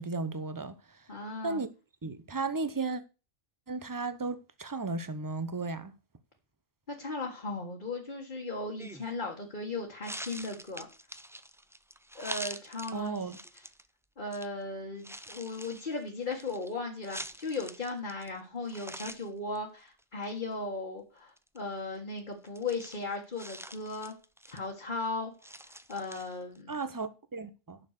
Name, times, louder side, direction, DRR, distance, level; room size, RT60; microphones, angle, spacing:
voice 1, 0.0-1.1 1.4-1.7 2.0-3.0 3.7-5.9 12.9-13.4 26.7-27.8, right 3 dB, 20° right, 0.7 m, -35 dB
voice 2, 1.1-1.6 6.9-10.9 12.2-13.3 14.2-24.1 24.5-25.3 25.6-26.8, left 3 dB, 50° left, 1.8 m, -37 dB
sound 1, 8.8-9.1 10.0-13.9 14.3-14.5 14.9-18.4 18.6-19.3 19.5-19.6 20.0-20.4 21.4-21.6 22.4-24.8 25.4-26.6, right 1 dB, 5° right, 0.3 m, -45 dB
10.0 x 6.6 x 6.6 m
omnidirectional pair, 1.0 m